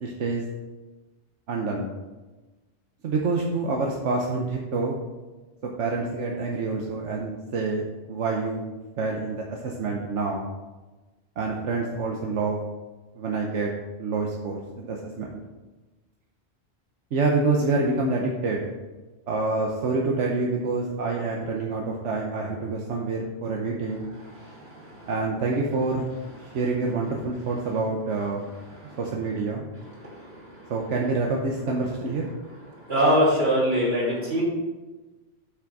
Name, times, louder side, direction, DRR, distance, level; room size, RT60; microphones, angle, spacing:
voice 1, 0.0-0.4 1.5-1.9 3.0-4.9 5.8-7.8 8.1-8.7 9.0-10.4 11.4-12.6 13.1-13.7 14.0-15.4 17.1-18.7 19.3-24.1 25.1-26.1 26.5-28.5 29.0-29.7 30.7-32.3, right 3 dB, 85° right, -1 dB, 1.2 m, -27 dB
voice 2, 32.9-34.4, equal, 60° right, -5 dB, 3.3 m, -21 dB
8.3 x 6.1 x 4.6 m, 1.2 s
omnidirectional pair, 1.2 m